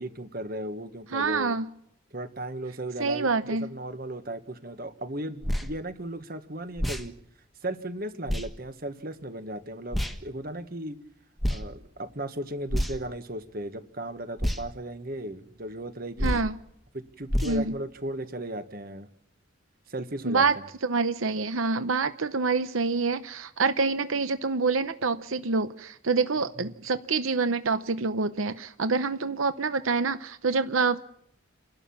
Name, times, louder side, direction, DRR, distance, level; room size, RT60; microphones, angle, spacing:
voice 1, 0.0-1.5 2.1-7.1 7.6-11.0 11.5-16.4 16.9-19.1 19.9-20.4 26.7-26.8, right 1 dB, 45° right, 10 dB, 1.5 m, -36 dB
voice 2, 1.1-1.7 3.0-3.7 16.2-16.6 17.4-17.7 20.3-20.6 20.8-31.0, right 4 dB, 85° right, 11 dB, 0.8 m, -26 dB
sound 1, 5.4-5.7 6.8-7.1 8.3-8.5 9.9-10.2 11.4-11.6 12.7-13.1 14.4-14.6 16.2-16.5 17.3-17.6, equal, ahead, 1.4 m, -27 dB
29.5 x 12.0 x 7.2 m, 0.73 s
head